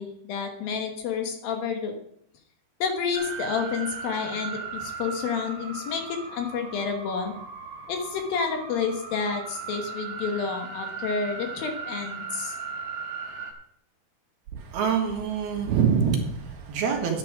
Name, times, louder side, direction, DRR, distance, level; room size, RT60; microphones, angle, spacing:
voice 1, 0.0-1.9 2.8-7.3 7.9-12.6, left 5 dB, 65° left, 4 dB, 2.9 m, -30 dB
sound 1, 3.1-13.5, right 5 dB, 50° right, 1.4 m, -37 dB
voice 2, 14.5-17.2, right 6 dB, 70° right, 1 dB, 3.5 m, -25 dB
10.5 x 9.1 x 4.8 m, 0.69 s
omnidirectional pair, 4.7 m